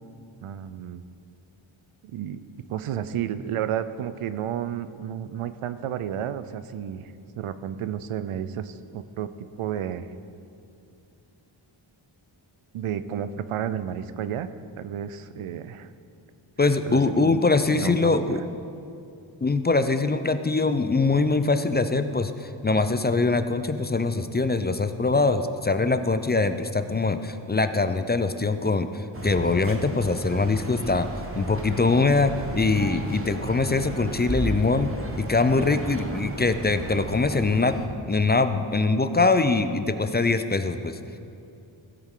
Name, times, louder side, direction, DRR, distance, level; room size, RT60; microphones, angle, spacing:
voice 1, 0.4-1.0 2.0-2.4 2.7-9.3 9.6-10.1 12.7-14.5 14.8-15.9 16.8-17.4 17.7-18.4, right 9 dB, 85° right, 13 dB, 0.6 m, -32 dB
voice 2, 16.6-18.4 19.4-31.1 31.4-34.9 35.2-37.8 38.1-41.0, left 3 dB, 20° left, 10 dB, 0.5 m, -23 dB
sound 1, 29.1-37.9, right 1 dB, 25° right, 1.2 m, -34 dB
16.0 x 8.0 x 3.8 m, 2.6 s
cardioid pair, 65°, 49 cm